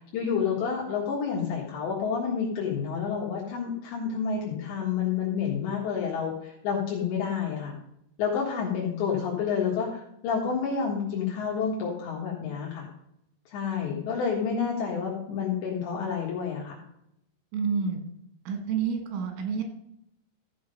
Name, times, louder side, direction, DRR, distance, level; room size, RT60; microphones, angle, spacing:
voice 1, 0.1-7.7 8.2-12.9 13.5-16.8, left 6 dB, 70° left, -4 dB, 3.8 m, -29 dB
voice 2, 17.5-18.0 18.5-19.6, right 6 dB, 85° right, 4 dB, 4.1 m, -29 dB
14.5 x 6.4 x 5.3 m, 0.78 s
omnidirectional pair, 5.4 m